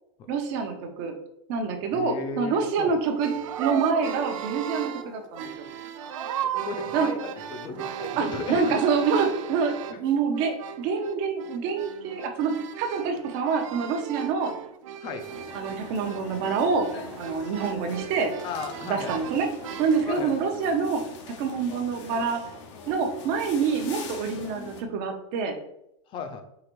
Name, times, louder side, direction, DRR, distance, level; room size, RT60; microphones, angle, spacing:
voice 1, 0.3-1.1 1.5-3.3 3.6-5.6 6.9-7.1 8.2-14.5 15.5-16.9 17.2-18.3 18.8-19.5 19.8-21.0 21.4-22.4 22.9-25.6, right 5 dB, 50° right, 5 dB, 0.8 m, -26 dB
voice 2, 1.9-3.0 6.4-8.8 9.9-10.0 15.0-15.3 18.4-19.2 20.0-20.3 26.1-26.4, left 5 dB, 30° left, 7 dB, 0.5 m, -35 dB
sound 1, 3.1-10.1 10.3-20.1, right 9 dB, 85° right, 0.4 m, -36 dB
sound 2, 15.2-24.8, left 4 dB, 70° left, 0.8 m, -43 dB
4.8 x 2.5 x 3.0 m, 0.79 s
supercardioid pair, 140°, 16 cm